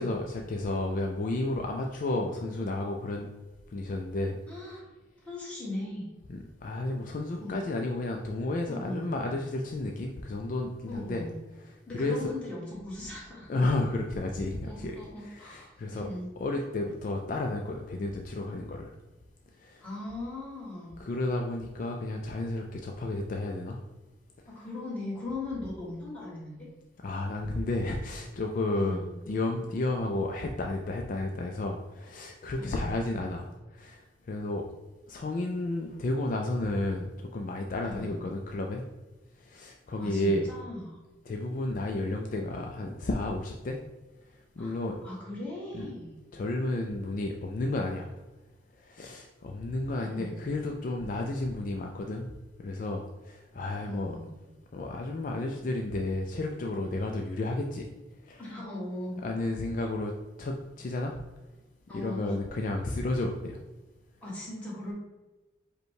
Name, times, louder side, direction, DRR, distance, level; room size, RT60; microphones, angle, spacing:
voice 1, 0.0-3.3 3.7-4.4 6.6-11.2 11.9-12.3 13.5-15.0 15.3-16.1 16.4-18.9 19.6-19.8 21.0-23.8 27.0-33.5 33.7-34.0 34.3-34.6 35.1-38.8 39.5-40.4 41.3-43.8 44.6-44.9 45.7-45.9 46.3-48.1 48.8-52.3 52.6-54.2 54.7-57.9 58.3-58.4 59.2-60.1 60.4-61.1 61.9-63.6, left 2 dB, 45° left, 2 dB, 0.4 m, -32 dB
voice 2, 4.5-4.8 5.2-6.1 7.4-7.6 8.7-9.1 10.9-11.4 11.9-13.5 14.6-16.3 19.8-21.0 24.5-26.7 28.7-29.1 32.6-32.9 37.8-38.2 40.0-41.0 44.6-46.1 50.0-50.4 53.9-54.3 58.4-59.2 61.9-62.4 64.2-64.9, left 2 dB, 10° left, -6 dB, 1.4 m, -39 dB
5.1 x 2.2 x 4.6 m, 1.1 s
head